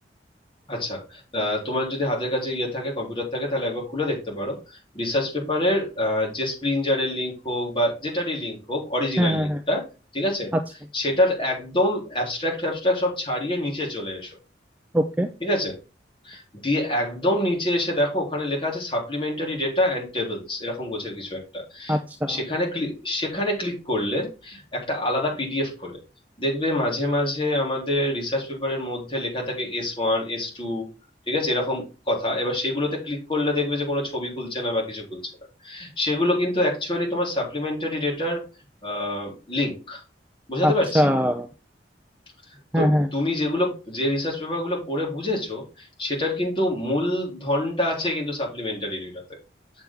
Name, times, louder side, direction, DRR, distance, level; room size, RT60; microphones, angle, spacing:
voice 1, 0.7-9.9 10.1-10.5 10.9-14.4 15.4-15.8 16.2-22.0 22.3-26.0 26.4-30.9 31.3-35.3 35.6-38.4 38.8-40.0 40.5-41.0 42.8-49.2, left 1 dB, 30° left, -2 dB, 3.5 m, -26 dB
voice 2, 9.2-9.6 14.9-15.3 21.9-22.4 40.6-41.5 42.7-43.1, equal, 10° right, 5 dB, 0.5 m, -21 dB
7.4 x 7.3 x 3.6 m, 0.32 s
head